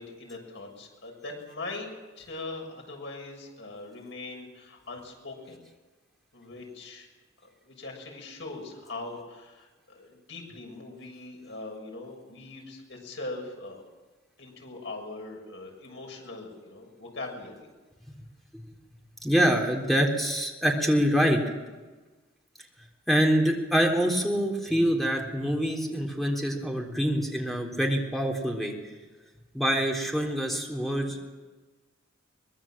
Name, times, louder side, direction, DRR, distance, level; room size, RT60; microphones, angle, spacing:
voice 1, 0.0-1.9 2.2-5.6 6.3-7.1 7.7-13.8 14.4-17.7, left 2 dB, 65° left, 2 dB, 6.8 m, -41 dB
voice 2, 19.2-21.4 23.1-28.7 29.5-31.2, equal, ahead, 1 dB, 3.8 m, -25 dB
24.0 x 21.0 x 7.6 m, 1.3 s
head